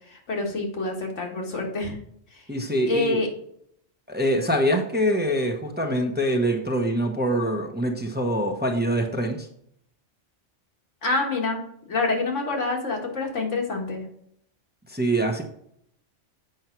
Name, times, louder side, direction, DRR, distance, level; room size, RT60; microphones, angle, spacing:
voice 1, 0.1-2.0 2.3-2.4 2.9-3.3 11.0-11.6 11.9-14.1, left 3 dB, 85° left, 1 dB, 2.0 m, -27 dB
voice 2, 2.5-3.2 4.1-9.5 14.9-15.4, equal, 10° right, 3 dB, 0.8 m, -24 dB
7.9 x 5.5 x 4.5 m, 0.70 s
omnidirectional pair, 1.2 m